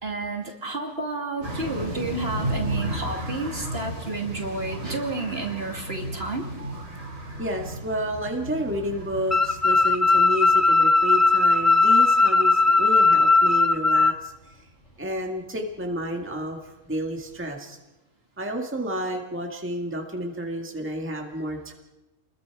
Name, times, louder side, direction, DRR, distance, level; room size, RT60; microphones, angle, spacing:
voice 1, 0.0-6.5, right 3 dB, 50° right, 2 dB, 2.7 m, -31 dB
sound 1, 1.4-17.4, equal, 65° left, 5.0 m, -42 dB
sound 2, 1.4-10.5, right 1 dB, 80° right, 5.5 m, -35 dB
voice 2, 7.4-14.6 15.0-16.6 16.9-17.8 18.4-21.7, equal, 10° right, 1 dB, 1.8 m, -31 dB
sound 3, 9.3-14.1, left 3 dB, 20° left, 0.4 m, -18 dB
29.5 x 21.5 x 4.8 m, 1.0 s
omnidirectional pair, 1.4 m